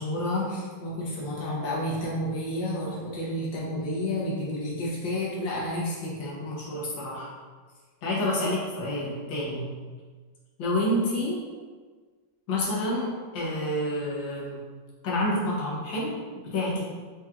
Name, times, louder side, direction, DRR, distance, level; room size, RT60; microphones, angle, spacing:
voice 1, 0.0-7.3 8.0-9.7 10.6-11.4 12.5-14.6 15.0-16.1 16.4-16.8, left 1 dB, 85° left, -6 dB, 1.6 m, -29 dB
4.7 x 2.8 x 2.4 m, 1.4 s
omnidirectional pair, 2.0 m